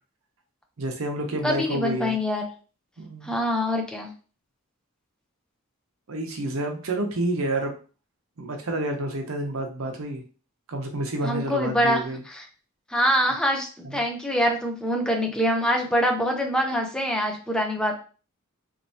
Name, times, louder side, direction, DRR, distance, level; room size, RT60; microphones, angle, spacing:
voice 1, 0.8-2.2 3.0-3.3 6.1-7.7 8.4-10.2 10.7-12.2 13.8-14.0, right 1 dB, 90° right, 3 dB, 0.7 m, -29 dB
voice 2, 1.4-2.4 3.2-4.1 11.2-12.0 12.3-12.4 12.9-17.9, equal, 5° left, 1 dB, 0.5 m, -24 dB
3.2 x 2.6 x 2.7 m, 0.36 s
head